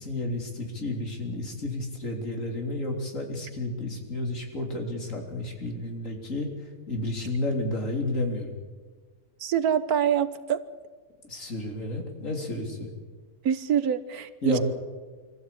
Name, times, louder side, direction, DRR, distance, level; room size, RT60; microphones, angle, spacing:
voice 1, 0.0-8.6 11.2-12.9 14.4-14.6, left 2 dB, 60° left, 2 dB, 3.8 m, -31 dB
voice 2, 9.4-10.6 13.4-14.6, right 8 dB, 85° right, 13 dB, 1.5 m, -25 dB
24.5 x 15.0 x 8.5 m, 1.4 s
omnidirectional pair, 1.6 m